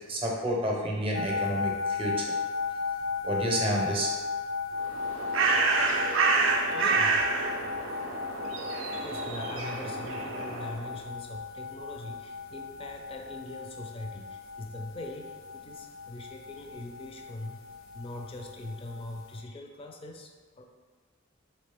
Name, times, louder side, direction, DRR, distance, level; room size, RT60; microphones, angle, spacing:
voice 1, 0.1-2.3 3.2-4.1, equal, 25° right, -2 dB, 0.6 m, -29 dB
sound 1, 1.1-19.4, left 4 dB, 80° left, 0.5 m, -36 dB
Bird, 4.8-10.9, right 4 dB, 70° right, 0.4 m, -28 dB
voice 2, 6.7-7.2 7.6-7.7 9.0-17.6 17.9-20.7, left 2 dB, 25° left, 3 dB, 0.4 m, -42 dB
4.1 x 3.1 x 3.4 m, 1.4 s
head